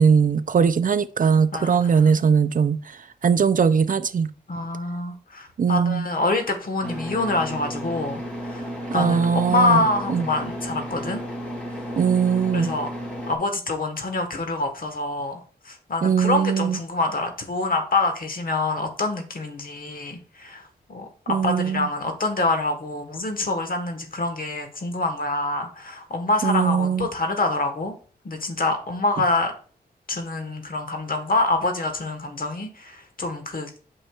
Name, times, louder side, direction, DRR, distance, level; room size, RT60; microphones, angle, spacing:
voice 1, 0.0-2.8 3.2-4.3 5.6-6.1 8.9-10.3 12.0-12.7 16.0-16.8 21.3-21.9 26.4-27.1, right 6 dB, 50° right, 0.4 m, -20 dB
voice 2, 1.5-2.1 4.5-8.2 8.5-8.6 8.9-11.2 12.5-12.9 13.3-20.6 20.9-27.9 28.2-29.5 30.1-33.7, left 2 dB, 55° left, 1.3 m, -26 dB
sound 1, 6.8-13.4, equal, 5° left, 2.5 m, -33 dB
8.4 x 5.4 x 2.4 m
cardioid pair, 70°, 18 cm